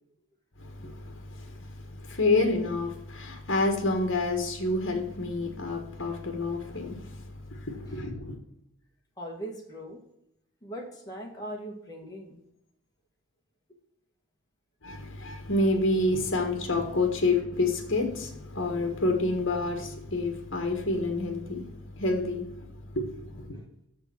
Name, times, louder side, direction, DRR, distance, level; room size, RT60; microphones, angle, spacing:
voice 1, 0.6-1.7 2.0-7.1 7.5-8.4 14.8-21.7 21.9-22.7 22.9-23.5, left 2 dB, 65° left, 1.5 m, -28 dB
voice 2, 9.2-10.0 10.6-12.4 23.5-23.6, right 1 dB, 20° left, 1.9 m, -40 dB
6.9 x 6.9 x 6.2 m
head